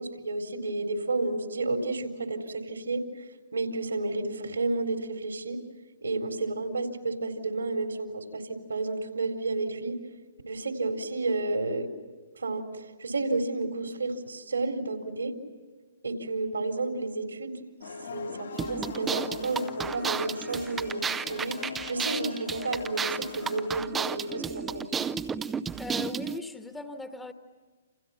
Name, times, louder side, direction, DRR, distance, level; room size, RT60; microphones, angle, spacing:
voice 1, 0.0-3.0 3.5-5.6 6.0-10.0 10.5-11.9 12.4-15.4 16.0-17.6 18.1-24.9, right 2 dB, 80° right, 5 dB, 4.0 m, -31 dB
sound 1, 17.8-23.7, left 5 dB, 70° left, 3.7 m, -41 dB
sound 2, 18.6-26.4, right 6 dB, 15° right, 0.8 m, -33 dB
voice 2, 25.8-27.3, left 2 dB, 5° left, 7 dB, 1.5 m, -38 dB
29.5 x 28.0 x 5.9 m, 1.5 s
figure-of-eight pair, 125°, 0 cm